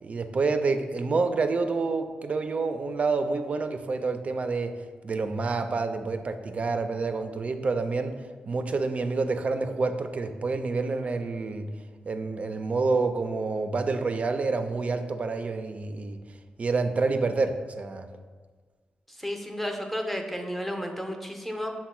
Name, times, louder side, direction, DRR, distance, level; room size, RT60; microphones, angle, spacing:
voice 1, 0.0-4.8 5.0-8.2 8.5-11.7 12.1-16.2 16.6-18.0, right 3 dB, 45° right, 8 dB, 0.3 m, -28 dB
voice 2, 19.1-21.7, equal, 5° left, 3 dB, 0.6 m, -32 dB
5.9 x 2.1 x 4.1 m, 1.5 s
cardioid pair, 70°, 3 cm